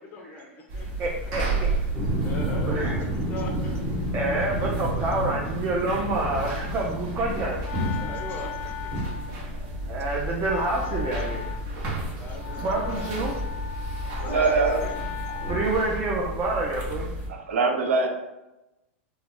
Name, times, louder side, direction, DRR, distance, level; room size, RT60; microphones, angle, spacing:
voice 1, 0.0-1.1 2.0-3.8 4.9-5.1 7.7-9.2 10.5-10.8 12.2-13.1 14.2-15.0, left 1 dB, 25° left, 1 dB, 0.4 m, -39 dB
sound 1, 0.7-17.3, right 1 dB, 50° right, 0.9 m, -32 dB
voice 2, 1.0-1.4 2.6-3.0 4.1-7.6 9.8-11.5 12.6-13.4 15.5-17.1, right 2 dB, 30° right, -2 dB, 0.5 m, -27 dB
sound 2, 1.9-8.4 8.9-9.0, right 1 dB, 10° right, 1.0 m, -31 dB
Wind instrument woodwind instrument, 7.1-16.2, left 8 dB, 85° left, 0.4 m, -39 dB
voice 3, 14.1-14.8 15.3-15.6 17.3-18.1, right 4 dB, 85° right, 3 dB, 0.5 m, -24 dB
2.3 x 2.1 x 3.6 m, 0.96 s
hypercardioid pair, 115°, 7 cm